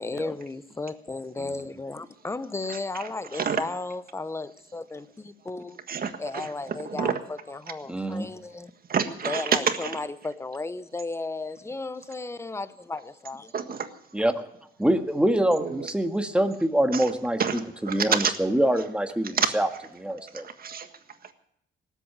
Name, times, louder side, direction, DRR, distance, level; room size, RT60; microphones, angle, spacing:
voice 1, 0.0-5.8 6.2-8.7 9.2-13.5, left 3 dB, 15° left, 0.7 m, -34 dB
voice 2, 5.9-6.5 6.8-7.1 8.9-9.9 13.5-13.9 15.6-15.9 16.9-17.0 17.4-17.6 17.9-18.3 19.3-19.5 20.6-20.9, right 6 dB, 50° right, 1.6 m, -27 dB
voice 3, 7.9-8.3 14.1-14.3 14.8-19.7 19.9-20.5, right 1 dB, 5° right, 1.6 m, -25 dB
18.5 x 8.2 x 8.6 m
cardioid pair, 90°, 20 cm